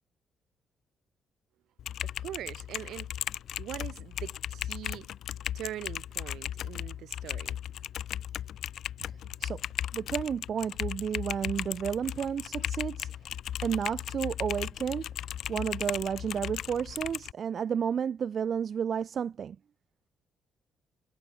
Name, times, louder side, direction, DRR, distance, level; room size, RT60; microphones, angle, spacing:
Typing, 1.8-17.3, left 10 dB, 70° left, 1.8 m, -36 dB
voice 1, 2.0-3.1 3.6-5.1 5.5-7.6, right 12 dB, 80° right, 7.3 m, -42 dB
voice 2, 9.9-13.1 13.6-15.1 15.5-19.6, right 7 dB, 55° right, 5.7 m, -31 dB
cardioid pair, 90°, 0 cm